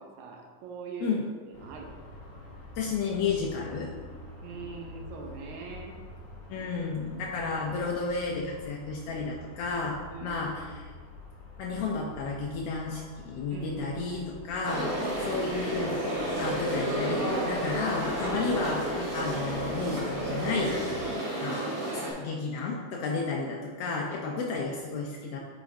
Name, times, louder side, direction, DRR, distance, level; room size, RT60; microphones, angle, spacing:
voice 1, 0.0-1.9 4.4-6.0 9.7-9.8 10.1-10.8 13.5-14.7 15.0-15.5 23.9-24.5, right 4 dB, 75° right, 2 dB, 2.1 m, -43 dB
sound 1, 1.5-21.1, left 1 dB, 50° left, 1.7 m, -47 dB
voice 2, 2.8-4.3 6.5-10.0 10.2-10.9 11.6-20.7 21.4-25.4, left 4 dB, 85° left, -1 dB, 1.4 m, -32 dB
sound 2, 14.6-22.1, right 1 dB, 55° right, 2.2 m, -31 dB
8.1 x 4.7 x 2.6 m, 1.4 s
omnidirectional pair, 3.5 m